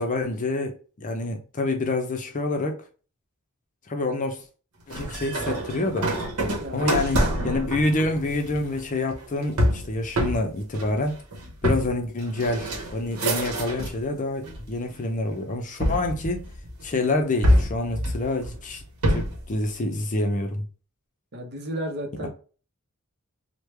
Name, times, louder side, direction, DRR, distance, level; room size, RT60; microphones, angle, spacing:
voice 1, 0.0-2.8 3.9-4.4 4.9-6.1 6.7-11.2 11.6-16.5 16.8-18.8 19.1-20.6, left 2 dB, 35° left, 0.5 m, -27 dB
sound 1, 4.9-14.1 14.4-15.1 15.8-16.9 17.4-19.5, equal, 85° right, 0.9 m, -26 dB
voice 2, 6.6-7.2 21.3-22.3, equal, 50° right, 0.8 m, -32 dB
3.1 x 2.2 x 3.2 m
head